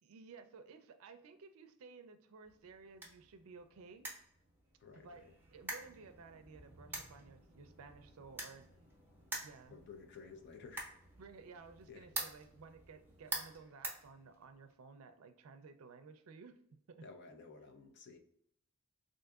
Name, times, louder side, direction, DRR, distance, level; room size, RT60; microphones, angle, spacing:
voice 1, 0.0-4.1 5.0-5.3 5.5-8.7 9.4-9.8 11.2-16.6 16.9-17.1, right 4 dB, 80° right, 8 dB, 0.4 m, -55 dB
sound 1, 2.4-14.7, right 2 dB, 10° right, 0.7 m, -48 dB
voice 2, 4.8-5.2 9.7-10.9 11.9-12.1 17.0-18.2, left 5 dB, 55° left, 4 dB, 0.5 m, -54 dB
3.7 x 2.6 x 2.3 m, 0.71 s
head